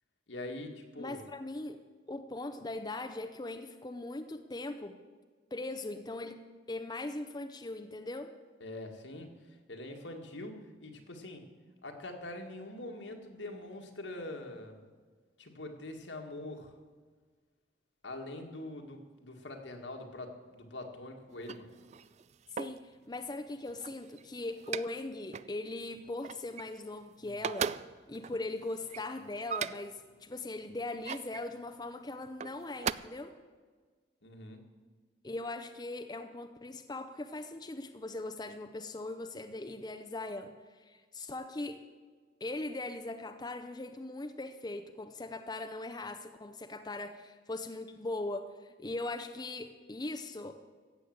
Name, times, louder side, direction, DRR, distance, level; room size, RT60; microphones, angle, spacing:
voice 1, 0.3-1.2 8.6-11.4 11.8-14.8 15.4-16.7 18.0-21.7 27.2-27.3 34.2-34.6, left 1 dB, 80° left, 3 dB, 1.9 m, -44 dB
voice 2, 1.0-1.8 2.1-4.9 5.5-6.4 6.7-8.3 22.5-27.7 28.1-33.3 35.2-41.8 42.4-50.6, left 2 dB, 20° left, 7 dB, 0.6 m, -40 dB
sound 1, 21.3-22.9 23.5-25.0 25.3-25.6 25.9-27.0 27.3-30.0 30.7-31.4 32.3-32.9, right 7 dB, 35° right, 0.3 m, -39 dB
15.0 x 8.5 x 7.7 m, 1.5 s
head